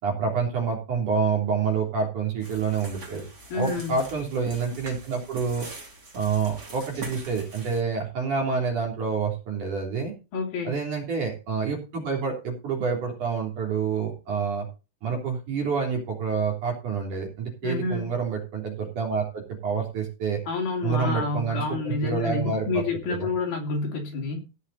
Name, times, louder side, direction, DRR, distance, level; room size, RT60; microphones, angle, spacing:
voice 1, 0.0-3.3 3.5-5.7 6.1-10.1 10.6-14.7 15.0-20.4 20.8-23.3, right 5 dB, 45° right, 1 dB, 4.7 m, -28 dB
sound 1, 2.4-7.8, right 2 dB, 25° right, 2.9 m, -43 dB
voice 2, 3.5-4.0 10.3-10.7 17.6-18.1 20.5-24.4, left 3 dB, 55° left, 1 dB, 4.4 m, -28 dB
17.5 x 6.4 x 4.2 m, 0.30 s
omnidirectional pair, 5.1 m